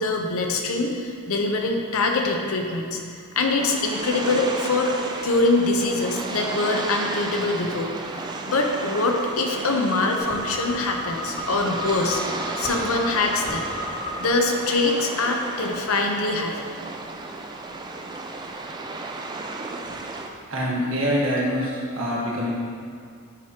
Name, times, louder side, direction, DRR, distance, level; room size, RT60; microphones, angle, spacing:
voice 1, 0.0-3.0 3.4-4.9 5.2-12.2 12.6-13.7 14.2-16.6, left 2 dB, 70° left, 2 dB, 0.7 m, -24 dB
sound 1, 3.6-20.3, right 3 dB, 20° right, 0.3 m, -33 dB
sound 2, 10.2-14.9, left 2 dB, 40° left, 1.5 m, -34 dB
voice 2, 20.5-22.6, equal, 65° right, -5 dB, 1.5 m, -25 dB
9.2 x 5.0 x 2.9 m, 2.2 s
head